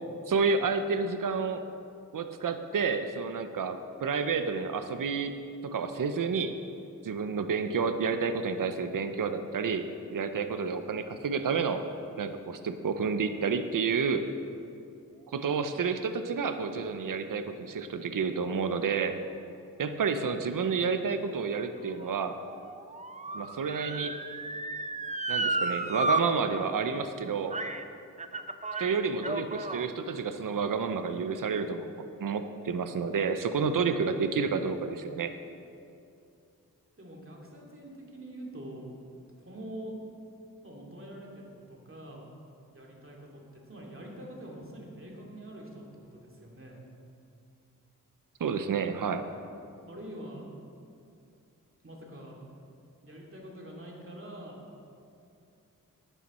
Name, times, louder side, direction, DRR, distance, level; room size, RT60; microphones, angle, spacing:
voice 1, 0.3-1.6 2.1-6.6 7.0-11.8 12.2-14.3 15.3-19.2 19.8-22.4 23.3-24.2 25.3-27.6 28.8-35.3 48.4-49.2, right 5 dB, 70° right, 9 dB, 0.7 m, -30 dB
Motor vehicle (road) / Siren, 21.0-26.2 26.6-26.7 27.5-27.8 28.2-29.9 30.6-30.7, right 2 dB, 20° right, 0.6 m, -33 dB
voice 2, 37.0-38.9 39.4-40.0 40.6-42.2 42.7-46.8 49.9-50.5 51.8-52.4 53.0-54.6, right 1 dB, 40° right, -2 dB, 2.5 m, -45 dB
12.0 x 9.1 x 4.3 m, 2.5 s
cardioid pair, 55°, 33 cm